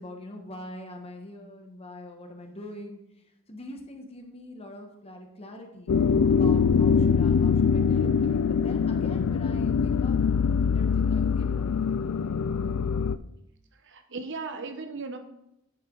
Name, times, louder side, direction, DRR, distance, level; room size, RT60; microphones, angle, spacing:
voice 1, 0.0-5.9 6.3-10.2 10.7-12.0, left 1 dB, 25° left, 3 dB, 1.3 m, -43 dB
sound 1, 5.9-13.2, left 6 dB, 70° left, 0.4 m, -23 dB
voice 2, 13.8-15.2, right 4 dB, 55° right, 7 dB, 0.9 m, -36 dB
10.0 x 6.7 x 3.9 m, 0.82 s
head